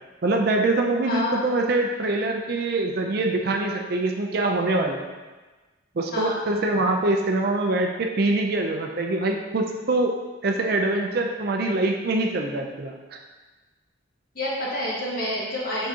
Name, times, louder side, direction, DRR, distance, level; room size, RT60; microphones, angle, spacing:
voice 1, 0.2-5.0 6.0-10.1 10.4-13.2, right 2 dB, 55° right, 2 dB, 0.5 m, -24 dB
voice 2, 1.0-1.5 6.1-6.5 14.4-15.9, left 1 dB, 50° left, -6 dB, 1.6 m, -28 dB
6.0 x 5.6 x 2.8 m, 1.2 s
head